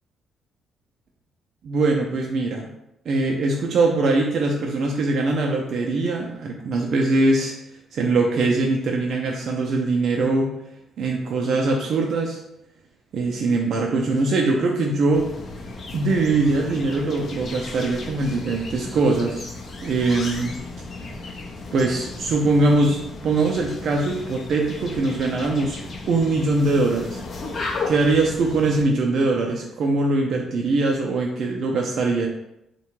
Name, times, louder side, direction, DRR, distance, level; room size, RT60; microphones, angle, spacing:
voice 1, 1.6-2.7 3.1-7.5 7.9-10.5 11.0-12.4 13.1-15.3 15.9-19.5 19.8-20.6 21.7-25.8 26.1-27.2 27.9-32.3, right 3 dB, 65° right, 0 dB, 0.3 m, -22 dB
sound 1, 15.1-28.9, left 3 dB, 55° left, 0.5 m, -35 dB
2.7 x 2.2 x 2.9 m, 0.83 s
supercardioid pair, 60°, 0 cm